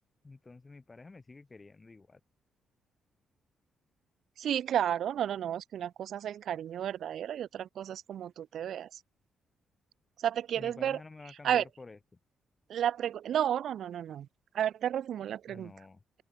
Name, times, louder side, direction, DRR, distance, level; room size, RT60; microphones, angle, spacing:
voice 1, 0.2-2.2 10.6-12.0 15.5-16.0, left 3 dB, 20° left, 5.5 m, -50 dB
voice 2, 4.4-9.0 10.2-11.0 11.4-11.6 12.7-14.3 14.5-15.7, right 10 dB, 60° right, 1.9 m, -32 dB
open air
cardioid pair, 150°, 0 cm